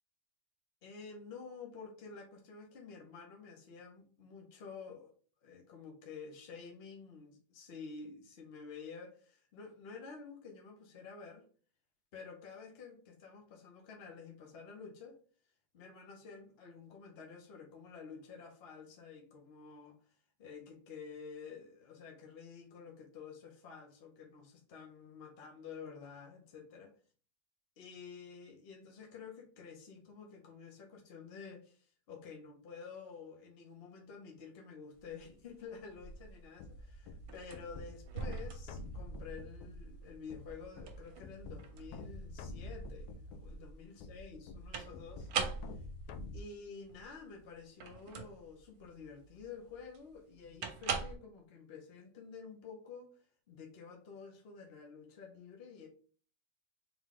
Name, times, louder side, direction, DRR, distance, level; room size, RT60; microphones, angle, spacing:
voice 1, 0.8-5.2 5.4-11.5 12.1-15.2 15.7-26.9 27.8-45.3 45.6-45.8 46.3-55.9, left 5 dB, 55° left, 0.7 m, -50 dB
sound 1, 34.9-51.2, right 6 dB, 65° right, 1.1 m, -43 dB
sound 2, 36.0-46.4, left 1 dB, 75° left, 1.0 m, -48 dB
3.9 x 3.0 x 3.7 m
omnidirectional pair, 1.8 m